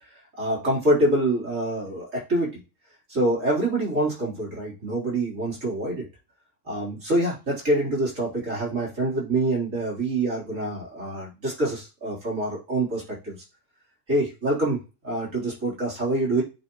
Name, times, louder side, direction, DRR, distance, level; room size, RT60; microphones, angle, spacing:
voice 1, 0.4-2.6 3.1-6.0 6.7-13.4 14.1-16.4, right 1 dB, 85° right, -5 dB, 4.2 m, -26 dB
9.0 x 4.2 x 3.1 m, 0.29 s
omnidirectional pair, 1.3 m